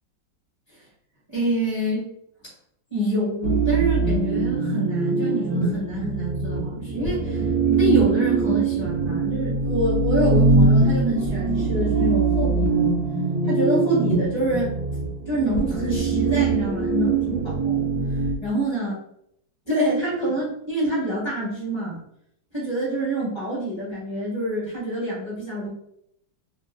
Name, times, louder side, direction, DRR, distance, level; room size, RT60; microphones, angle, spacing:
voice 1, 1.3-2.1 2.9-7.4 7.7-12.9 13.4-14.7 15.3-17.9 18.4-18.9 19.7-22.0 22.5-25.7, right 1 dB, 20° left, -7 dB, 0.9 m, -26 dB
sound 1, 3.4-18.4, right 3 dB, 75° right, 1.1 m, -22 dB
3.0 x 2.7 x 2.5 m, 0.74 s
omnidirectional pair, 2.0 m